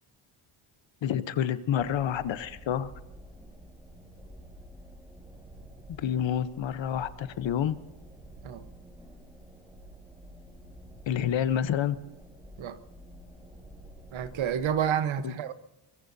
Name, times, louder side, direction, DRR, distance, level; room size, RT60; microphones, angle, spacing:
voice 1, 1.0-2.9 5.9-7.8 11.1-12.0 15.2-15.4, left 9 dB, 65° left, 14 dB, 1.0 m, -28 dB
sound 1, 1.6-14.9, right 1 dB, 10° right, 4.3 m, -50 dB
voice 2, 14.1-15.5, right 9 dB, 70° right, 12 dB, 1.2 m, -29 dB
23.5 x 21.0 x 2.7 m, 0.94 s
cardioid pair, 75°, 49 cm